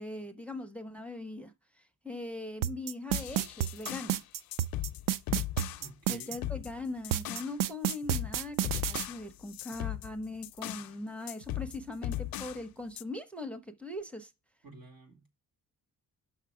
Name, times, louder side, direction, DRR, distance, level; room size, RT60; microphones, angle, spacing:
voice 1, 0.0-1.5 2.0-4.2 6.1-14.3, left 2 dB, 5° left, 0.5 m, -40 dB
sound 1, 2.6-6.4 7.1-9.1, right 12 dB, 65° right, 0.5 m, -30 dB
sound 2, 3.1-4.2 4.5-5.9 6.2-7.6 7.9-10.9 11.3-12.6 13.0-13.1, left 14 dB, 80° left, 0.5 m, -38 dB
voice 2, 5.8-6.4 14.6-15.3, right 2 dB, 90° right, 2.6 m, -51 dB
6.2 x 6.0 x 4.8 m
wide cardioid pair, 170°, 35 cm